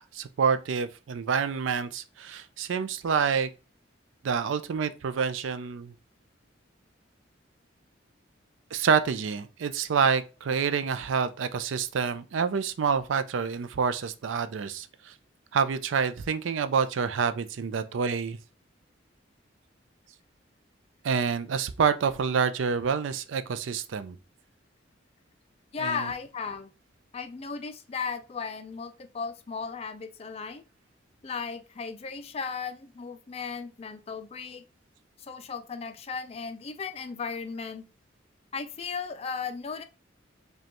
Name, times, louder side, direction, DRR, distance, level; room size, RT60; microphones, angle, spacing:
voice 1, 0.0-3.5 4.2-5.9 8.7-15.1 15.5-18.4 21.0-24.2 25.8-26.1, right 6 dB, 85° right, 0.4 m, -27 dB
voice 2, 25.7-26.7 27.1-30.6 31.2-34.6 35.2-37.8 38.5-39.8, left 5 dB, 30° left, 0.4 m, -36 dB
5.0 x 2.3 x 2.9 m
head